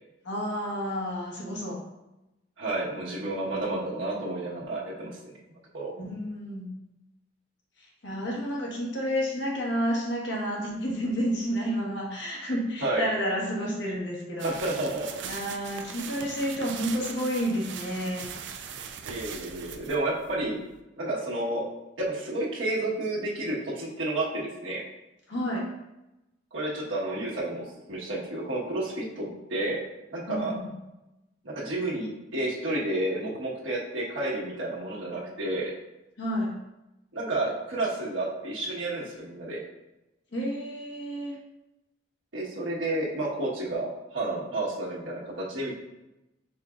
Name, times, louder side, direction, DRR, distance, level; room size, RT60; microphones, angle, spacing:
voice 1, 0.2-1.8 6.0-6.7 8.0-14.5 15.2-18.3 25.3-25.6 30.3-30.5 36.2-36.5 40.3-41.3, equal, 65° left, -3 dB, 1.3 m, -30 dB
voice 2, 2.6-5.2 5.7-5.9 12.8-13.0 14.4-15.1 19.0-20.6 21.0-21.7 22.0-24.8 26.5-29.8 30.1-30.5 31.4-35.7 37.1-39.6 42.3-45.7, right 2 dB, 85° right, -5 dB, 1.3 m, -31 dB
sound 1, 14.4-20.8, right 7 dB, 65° right, 0.4 m, -40 dB
5.5 x 4.0 x 2.4 m, 0.95 s
head